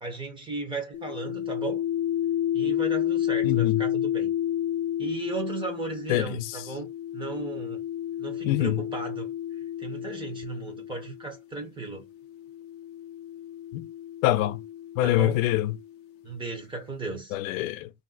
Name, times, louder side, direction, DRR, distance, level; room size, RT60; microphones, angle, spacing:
voice 1, 0.0-1.8 2.5-4.3 5.0-7.8 8.2-9.3 9.8-12.0 15.0-15.4 16.2-17.4, right 3 dB, 15° right, 0.8 m, -35 dB
sound 1, 0.9-11.3 12.2-15.9, left 11 dB, 35° left, 0.5 m, -31 dB
voice 2, 3.4-3.8 6.1-6.5 8.4-8.8 13.7-13.9 14.2-14.6 15.0-15.8 17.3-17.9, left 15 dB, 90° left, 0.5 m, -25 dB
2.7 x 2.1 x 3.8 m
supercardioid pair, 145°, 39 cm